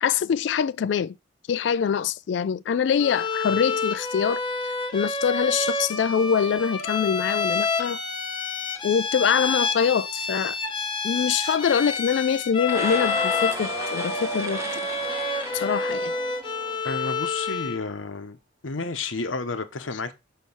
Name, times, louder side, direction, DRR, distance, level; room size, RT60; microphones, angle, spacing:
voice 1, 0.0-1.1 1.5-4.4 4.9-8.0 8.8-10.6 11.0-14.8 15.5-16.1, left 7 dB, 65° left, 0.3 m, -24 dB
Bowed string instrument, 3.0-17.9, left 4 dB, 25° left, 0.9 m, -28 dB
sound 1, 12.6-16.8, right 1 dB, 15° right, 0.9 m, -34 dB
voice 2, 16.8-18.4 18.6-20.1, left 3 dB, 85° left, 1.0 m, -31 dB
5.8 x 4.5 x 5.4 m
head